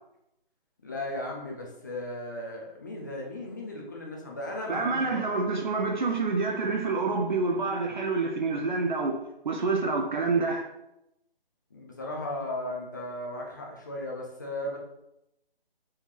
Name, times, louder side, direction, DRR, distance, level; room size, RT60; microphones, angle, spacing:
voice 1, 0.8-5.3 11.7-14.8, left 1 dB, 20° left, 0.5 m, -36 dB
voice 2, 4.7-9.2 9.4-10.7, right 3 dB, 50° right, 0.7 m, -27 dB
4.2 x 3.8 x 2.9 m
figure-of-eight pair, 150°, 29 cm